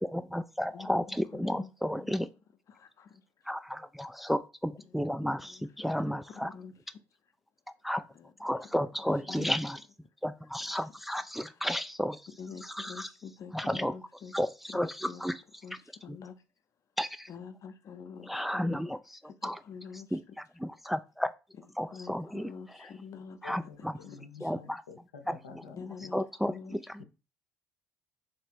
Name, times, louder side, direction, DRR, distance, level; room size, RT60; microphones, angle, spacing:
voice 1, 0.0-2.3 3.5-6.5 7.8-8.0 8.4-9.8 10.2-12.2 12.8-13.1 13.5-13.9 14.3-15.3 17.0-17.3 18.3-19.0 19.4-19.6 20.1-20.2 20.6-21.3 21.8-22.5 23.4-24.0 24.4-24.8 25.3-25.4 26.1-26.5, equal, ahead, 0.3 m, -32 dB
voice 2, 0.7-2.1 2.7-3.5 4.8-6.7 8.1-8.3 8.6-8.7 9.3-9.5 11.5-11.8 12.4-14.3 14.7-14.8 15.1-15.2 15.6-16.4 17.3-18.9 19.2-20.3 21.6-24.5 25.7-27.0, left 6 dB, 50° left, 0.7 m, -47 dB
voice 3, 23.4-26.1, left 5 dB, 85° left, 0.6 m, -50 dB
3.2 x 3.0 x 4.4 m
hypercardioid pair, 50°, 7 cm